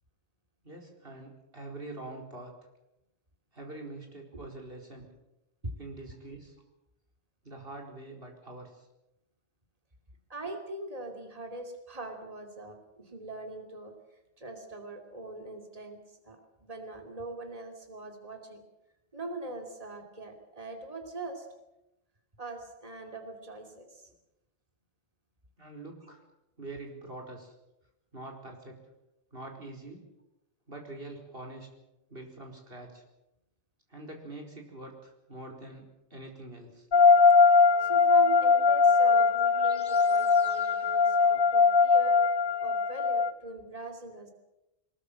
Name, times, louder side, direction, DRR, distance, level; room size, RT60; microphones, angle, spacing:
voice 1, 0.6-2.5 3.5-5.1 5.8-6.6 7.4-8.9 25.6-26.2 26.6-27.5 28.1-28.7 29.3-30.1 30.7-31.7 32.1-33.0 33.9-36.9, right 2 dB, 60° right, 1 dB, 4.9 m, -44 dB
voice 2, 10.3-13.9 14.4-18.6 19.1-21.5 22.4-24.1 37.8-42.2 42.6-44.3, right 2 dB, 35° right, 4 dB, 3.0 m, -42 dB
sound 1, 36.9-43.3, left 5 dB, 60° left, 1.3 m, -21 dB
23.0 x 20.5 x 7.5 m, 0.91 s
omnidirectional pair, 1.1 m